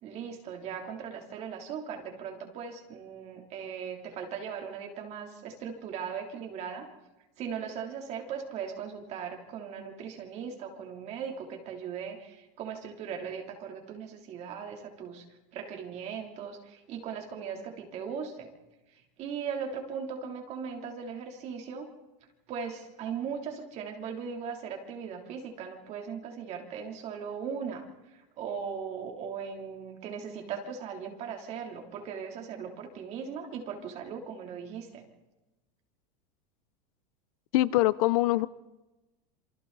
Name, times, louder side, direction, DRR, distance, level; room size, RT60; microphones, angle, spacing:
voice 1, 0.0-6.9 7.4-15.3 15.5-18.5 18.9-21.9 22.5-35.0, right 7 dB, 35° right, 3 dB, 3.3 m, -38 dB
voice 2, 37.5-38.5, left 16 dB, 60° left, 18 dB, 0.7 m, -23 dB
27.5 x 25.0 x 4.1 m, 1.1 s
supercardioid pair, 175°, 21 cm